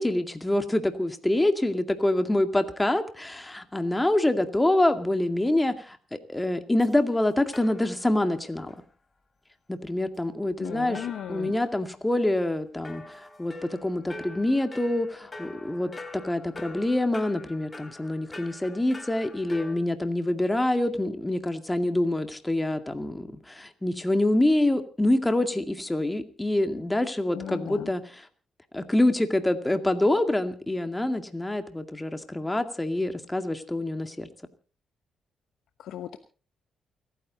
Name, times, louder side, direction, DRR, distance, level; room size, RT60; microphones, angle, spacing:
voice 1, 0.0-8.7 9.7-28.3 28.7-34.3, left 1 dB, 15° left, 8 dB, 2.2 m, -26 dB
sound 1, 6.8-6.9 7.5-8.3 8.7-8.8 10.6-12.2 12.8-19.8, left 2 dB, 30° left, 3.0 m, -44 dB
voice 2, 10.6-11.6 27.3-27.9 35.8-36.2, left 10 dB, 75° left, 10 dB, 1.0 m, -36 dB
29.0 x 9.9 x 4.1 m, 0.37 s
hypercardioid pair, 50°, 0 cm